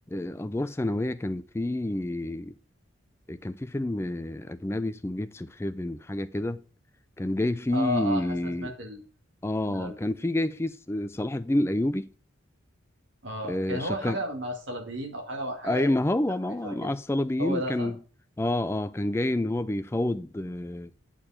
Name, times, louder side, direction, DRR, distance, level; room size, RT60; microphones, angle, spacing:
voice 1, 0.1-2.5 3.3-6.6 7.2-8.7 9.4-12.1 13.5-14.2 15.6-18.0 18.4-20.9, left 1 dB, 15° left, 0.4 m, -28 dB
voice 2, 7.7-9.0 9.7-10.0 13.2-16.0 16.6-16.9 17.4-17.9, equal, 65° right, 2.2 m, -33 dB
8.7 x 4.5 x 5.7 m
head